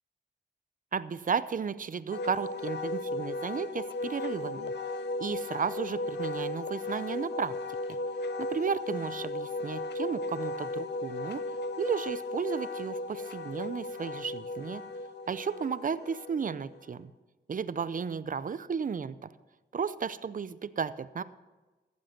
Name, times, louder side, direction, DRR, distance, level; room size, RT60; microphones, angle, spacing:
voice 1, 0.9-4.7 5.2-7.6 8.4-11.4 11.8-14.8 15.3-17.1 17.5-19.2 19.7-21.2, right 6 dB, 45° right, 15 dB, 0.6 m, -33 dB
Wind instrument woodwind instrument, 2.1-16.8, left 2 dB, 65° left, 0.7 m, -36 dB
14.5 x 7.6 x 6.0 m, 1.2 s
cardioid pair, 60°, 19 cm